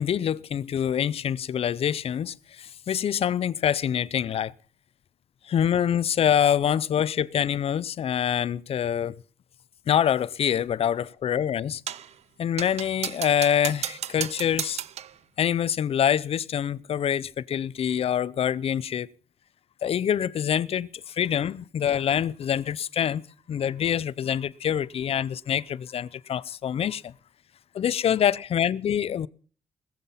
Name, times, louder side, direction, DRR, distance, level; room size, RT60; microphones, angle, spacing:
voice 1, 0.0-4.5 5.4-9.2 9.9-11.8 12.4-14.8 15.4-19.1 19.8-23.2 23.5-27.1 27.7-29.3, left 9 dB, 55° left, 0.5 m, -25 dB
sound 1, 11.9-12.1 12.6-15.2, right 10 dB, 60° right, 0.6 m, -34 dB
20.0 x 7.4 x 5.6 m
cardioid pair, 95°, 12 cm